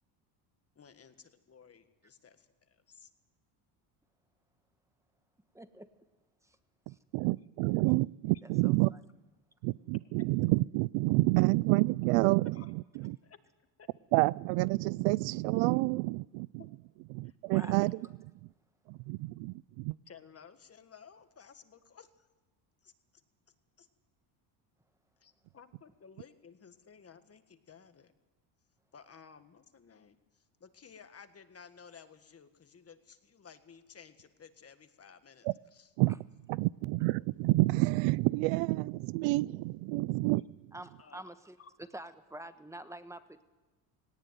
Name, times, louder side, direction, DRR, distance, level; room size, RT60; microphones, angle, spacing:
voice 1, 0.8-3.1 12.5-12.7 13.0-13.4 13.8-13.9 17.2-17.9 20.1-22.3 22.8-22.9 23.8-23.9 25.2-28.1 28.9-35.9 41.0-41.7, left 6 dB, 30° left, 9 dB, 1.7 m, -56 dB
voice 2, 5.5-5.9 6.4-6.6 6.9-7.0 8.4-9.0 17.5-17.8 36.1-36.2 40.7-41.6 41.9-43.4, right 1 dB, 5° right, 10 dB, 1.3 m, -47 dB
voice 3, 6.9-8.9 9.6-13.2 14.1-16.5 17.1-18.0 18.9-20.0 35.4-35.5 36.0-36.2 36.5-40.4, right 22 dB, 80° right, 22 dB, 0.6 m, -28 dB
18.5 x 18.0 x 9.3 m, 1.1 s
cardioid pair, 115°, 49 cm